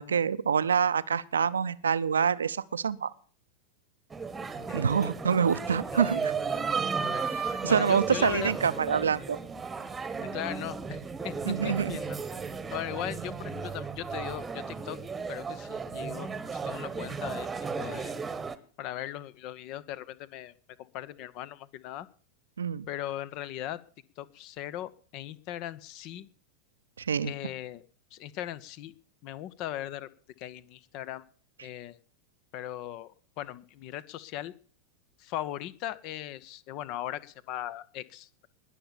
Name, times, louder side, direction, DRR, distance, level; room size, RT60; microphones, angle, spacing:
voice 1, 0.0-3.1 4.7-6.3 7.3-9.4 11.5-12.0 22.6-22.9 27.0-27.3, right 7 dB, 70° right, 15 dB, 0.7 m, -26 dB
sound 1, 4.1-18.5, right 5 dB, 15° right, 1.2 m, -34 dB
voice 2, 5.9-6.7 7.0-8.5 10.3-12.2 12.7-15.0 15.3-17.5 17.7-18.1 18.8-20.5 20.8-22.1 22.9-23.8 24.2-26.3 27.2-27.8 28.1-28.9 29.2-30.1 30.4-31.2 31.6-32.0 32.5-33.1 33.4-34.5 35.2-38.5, left 12 dB, 40° left, 19 dB, 0.9 m, -39 dB
20.5 x 6.9 x 7.0 m, 0.43 s
figure-of-eight pair, 90°, 0 cm